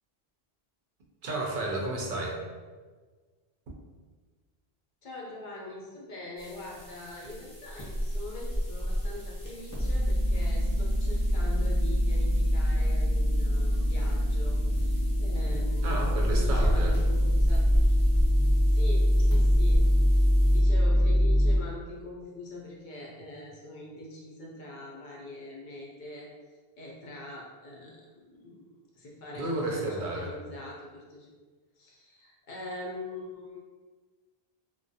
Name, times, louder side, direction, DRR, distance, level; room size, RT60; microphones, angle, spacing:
voice 1, 1.2-2.4 15.8-17.0 29.4-30.3, right 2 dB, 60° right, -2 dB, 0.7 m, -32 dB
voice 2, 5.0-17.6 18.7-19.9 20.5-26.3 26.8-28.0 28.3-28.7 28.9-31.3 31.8-33.6, left 1 dB, 55° left, -3 dB, 0.6 m, -43 dB
sound 1, 6.4-20.6, equal, 20° left, 0.7 m, -34 dB
sound 2, 9.8-21.6, equal, 25° right, 0.8 m, -24 dB
2.3 x 2.2 x 2.6 m, 1.4 s
omnidirectional pair, 1.1 m